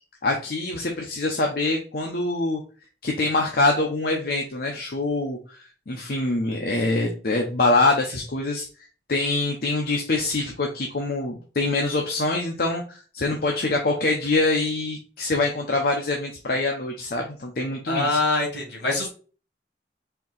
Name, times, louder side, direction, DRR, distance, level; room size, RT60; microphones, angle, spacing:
voice 1, 0.2-2.6 3.0-8.7 9.1-18.2, left 2 dB, 55° left, 1 dB, 0.7 m, -24 dB
voice 2, 17.9-19.1, left 2 dB, 80° left, -1 dB, 1.8 m, -24 dB
4.5 x 2.8 x 3.8 m, 0.37 s
head